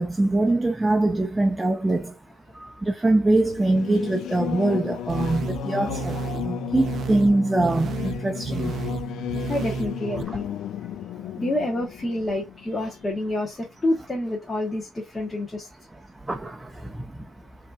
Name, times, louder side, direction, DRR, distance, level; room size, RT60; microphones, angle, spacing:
voice 1, 0.0-2.1 2.8-6.2 6.4-8.7 16.3-16.6, right 2 dB, 15° right, 0.6 m, -23 dB
Singing / Musical instrument, 3.4-13.5, left 12 dB, 80° left, 0.3 m, -34 dB
sound 1, 5.1-10.2, right 7 dB, 60° right, 0.4 m, -32 dB
voice 2, 9.5-10.4 10.8-10.9 11.3-15.7, left 1 dB, 25° left, 1.2 m, -28 dB
5.0 x 2.8 x 2.4 m
cardioid pair, 90°, 0 cm